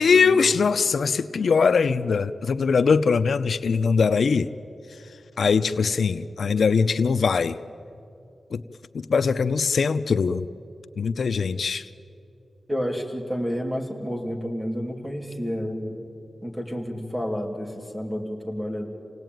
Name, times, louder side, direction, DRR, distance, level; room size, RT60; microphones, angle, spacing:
voice 1, 0.0-4.5 4.9-7.6 8.5-8.6 8.9-10.5 11.0-11.9, left 5 dB, 75° left, 12 dB, 0.5 m, -22 dB
voice 2, 12.7-16.1 16.4-18.9, equal, 10° right, 2 dB, 2.8 m, -30 dB
27.5 x 18.0 x 9.2 m, 2.8 s
wide cardioid pair, 120°, 0 cm